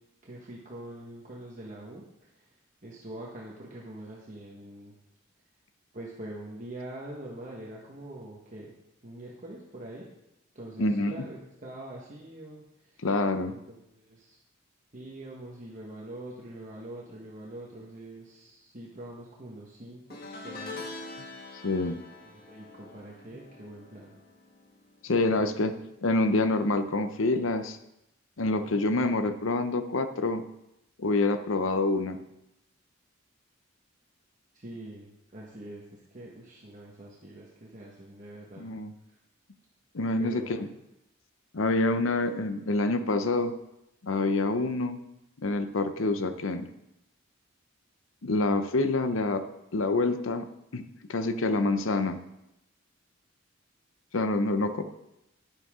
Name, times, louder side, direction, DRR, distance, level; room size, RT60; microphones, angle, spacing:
voice 1, 0.2-2.5 2.8-4.9 5.9-8.7 9.0-10.1 10.5-13.0 13.5-14.4 14.9-20.8 22.3-24.2 34.5-38.7 40.2-40.6, right 1 dB, 40° right, -4 dB, 1.4 m, -44 dB
voice 2, 10.8-11.2 13.0-13.6 21.6-22.0 25.0-25.7 26.0-27.8 28.4-30.4 31.0-32.2 38.6-38.9 39.9-40.7 41.5-43.5 44.0-45.0 45.4-46.7 48.2-49.4 49.7-50.5 50.7-50.8 51.1-52.2 54.1-54.8, left 2 dB, 80° left, 9 dB, 0.7 m, -27 dB
sound 1, 20.1-25.5 25.8-26.1 27.4-27.5, left 3 dB, 50° left, 1.6 m, -44 dB
11.0 x 10.5 x 3.7 m, 0.87 s
head